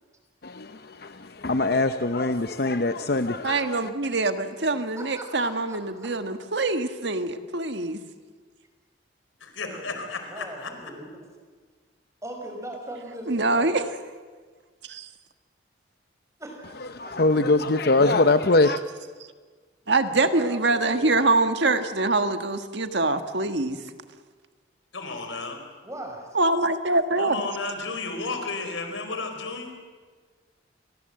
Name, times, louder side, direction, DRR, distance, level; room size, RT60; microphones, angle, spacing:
voice 1, 0.4-3.9 16.9-18.8, left 2 dB, 55° left, 0.7 m, -23 dB
voice 2, 3.4-8.0 13.3-13.9 14.9-15.1 19.9-23.8 26.4-27.4, right 2 dB, 65° right, 1.6 m, -24 dB
voice 3, 4.7-6.1 9.6-10.0 10.3-11.2 12.2-13.7 16.4-17.4 20.1-21.1 25.8-26.3, right 1 dB, 15° right, 5.2 m, -40 dB
voice 4, 9.4-10.7 24.9-25.6 27.2-29.7, left 3 dB, 90° left, 4.6 m, -33 dB
29.5 x 22.5 x 7.7 m
head